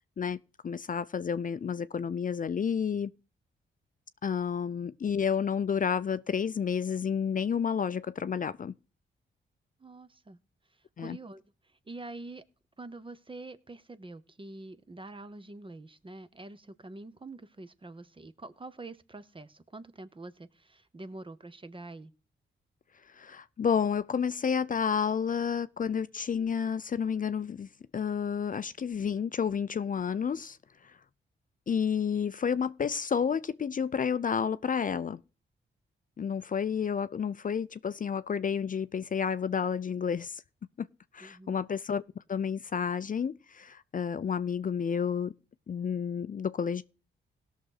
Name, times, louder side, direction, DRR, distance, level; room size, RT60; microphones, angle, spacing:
voice 1, 0.6-3.1 4.2-8.7 11.0-11.2 23.1-27.7 27.9-30.6 30.8-31.0 31.7-35.2 36.2-40.4 40.8-40.9 41.1-42.0 42.3-45.3 45.7-46.8, left 7 dB, 40° left, 0.5 m, -30 dB
voice 2, 9.8-10.4 11.0-11.4 11.9-12.4 12.8-22.1 41.2-41.5, right 2 dB, 25° right, 0.9 m, -45 dB
17.5 x 6.4 x 3.9 m
cardioid pair, 65°, 20 cm